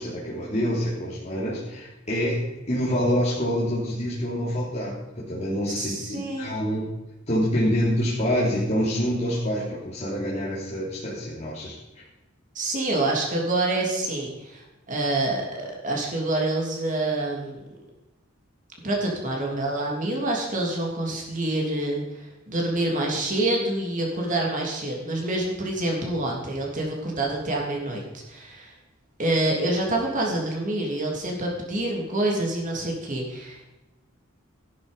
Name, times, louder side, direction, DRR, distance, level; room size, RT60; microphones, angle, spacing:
voice 1, 0.0-6.9 7.3-11.8, equal, 35° left, -7 dB, 3.3 m, -26 dB
voice 2, 5.8-6.5 12.5-17.6 18.8-28.0 28.3-28.7 29.2-33.6, right 2 dB, 40° right, -1 dB, 3.2 m, -27 dB
15.0 x 11.5 x 5.5 m, 1.0 s
head